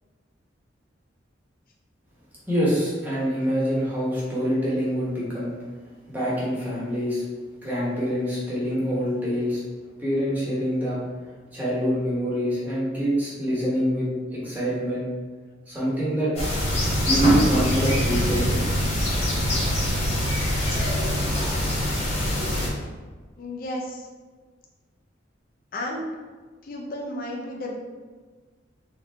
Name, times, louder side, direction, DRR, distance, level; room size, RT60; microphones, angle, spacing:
voice 1, 2.5-5.5 6.1-7.2 7.6-9.6 10.0-11.0 11.5-14.1 14.3-15.1 15.7-16.3 17.0-18.6, equal, 10° right, -8 dB, 1.3 m, -25 dB
sound 1, 16.4-22.7, equal, 35° left, 1.1 m, -24 dB
voice 2, 23.4-24.1 25.7-26.1 26.6-27.7, left 1 dB, 50° left, -1 dB, 0.6 m, -32 dB
3.7 x 3.3 x 3.4 m, 1.4 s
head